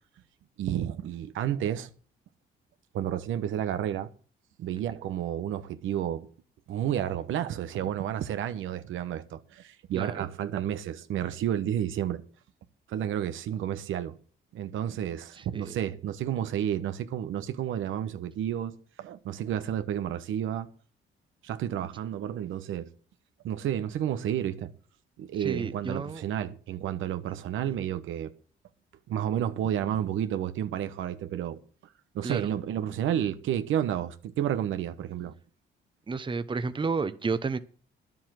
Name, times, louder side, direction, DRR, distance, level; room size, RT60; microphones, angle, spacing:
voice 1, 0.6-1.9 2.9-4.1 4.6-6.3 6.7-12.2 12.9-14.2 14.5-20.7 21.4-22.9 23.4-24.7 25.2-28.3 29.1-31.6 32.1-35.3, right 10 dB, 80° right, 1.1 m, -31 dB
voice 2, 25.4-26.2 32.2-32.5 36.1-37.6, right 4 dB, 25° right, 0.9 m, -31 dB
11.0 x 7.4 x 7.6 m
cardioid pair, 90°, 20 cm